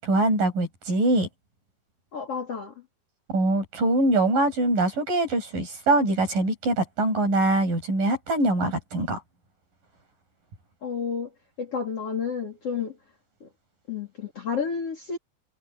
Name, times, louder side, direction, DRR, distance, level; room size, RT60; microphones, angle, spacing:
voice 1, 0.0-1.3 3.3-9.2, right 2 dB, 50° right, 9.4 m, -23 dB
voice 2, 2.1-2.7 10.8-11.3 11.6-12.9 13.4-13.5 13.9-15.2, left 6 dB, 35° left, 3.6 m, -30 dB
omnidirectional pair, 4.8 m